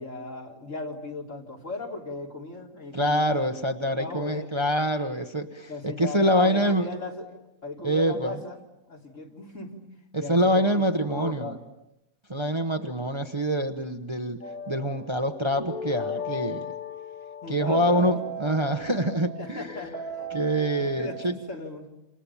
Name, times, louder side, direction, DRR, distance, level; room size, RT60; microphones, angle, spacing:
voice 1, 0.0-3.5 3.9-4.5 5.7-7.3 7.6-8.6 8.9-9.8 10.2-11.6 17.4-18.2 19.4-20.2 20.8-21.9, left 3 dB, 60° left, -1 dB, 4.0 m, -37 dB
voice 2, 2.9-6.9 7.8-8.4 10.1-11.6 12.3-14.4 14.7-16.7 17.5-19.7 20.3-21.4, equal, 20° right, 6 dB, 1.1 m, -25 dB
sound 1, 14.4-21.3, left 1 dB, 85° left, 7.5 m, -37 dB
29.0 x 28.0 x 7.2 m, 0.89 s
omnidirectional pair, 1.5 m